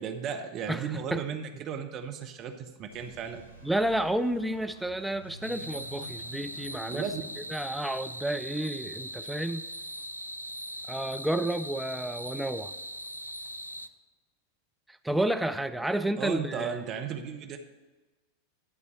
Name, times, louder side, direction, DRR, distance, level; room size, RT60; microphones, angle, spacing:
voice 1, 0.0-3.4 6.9-7.2 16.2-17.6, right 7 dB, 35° right, 6 dB, 0.8 m, -35 dB
voice 2, 0.7-1.2 3.6-7.1 7.4-9.6 10.9-12.7 15.0-16.9, right 1 dB, 5° right, 8 dB, 0.4 m, -31 dB
sound 1, 2.9-9.5, right 1 dB, 75° left, 2.0 m, -51 dB
sound 2, 5.4-13.9, equal, 90° right, 0.4 m, -40 dB
11.5 x 4.1 x 7.1 m, 1.2 s
figure-of-eight pair, 90°, 0 cm